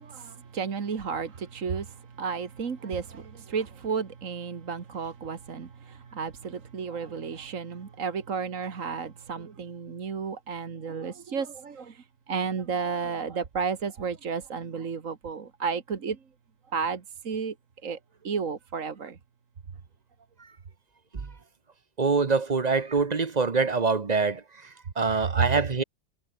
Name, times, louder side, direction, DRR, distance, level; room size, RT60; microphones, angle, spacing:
voice 1, 0.0-16.2 16.7-17.5 17.8-18.0 18.2-19.2 25.4-25.5, right 5 dB, 75° right, 2.0 m, -32 dB
voice 2, 22.0-24.4 25.0-25.8, right 4 dB, 35° right, 1.1 m, -24 dB
omnidirectional pair, 1.4 m